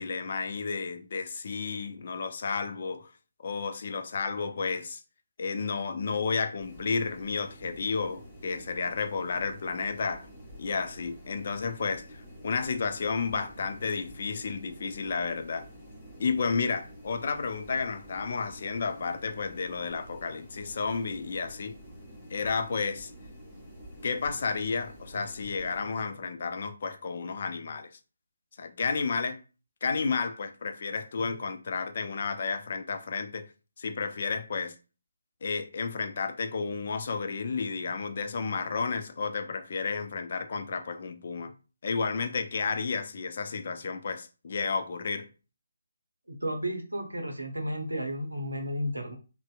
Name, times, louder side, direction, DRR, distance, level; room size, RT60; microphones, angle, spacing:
voice 1, 0.0-3.1 3.4-5.0 5.4-10.3 10.6-12.0 12.4-15.7 16.2-21.8 22.3-23.1 24.0-27.9 28.6-29.4 29.8-33.5 33.8-34.8 35.4-41.5 41.8-45.3, left 5 dB, 45° left, 0.3 m, -32 dB
sound 1, 6.6-25.8, equal, ahead, 0.8 m, -48 dB
voice 2, 46.3-49.2, equal, 80° right, 0.7 m, -33 dB
2.6 x 2.0 x 2.3 m
figure-of-eight pair, 145°, 0 cm